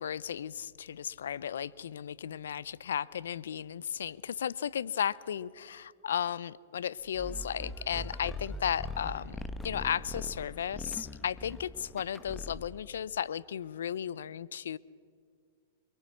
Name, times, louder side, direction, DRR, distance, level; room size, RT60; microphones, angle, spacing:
voice 1, 0.0-14.8, left 9 dB, 75° left, 21 dB, 0.6 m, -35 dB
sound 1, 7.1-12.9, left 2 dB, 10° left, 1.3 m, -41 dB
23.0 x 23.0 x 6.3 m, 2.1 s
hypercardioid pair, 115°, 0 cm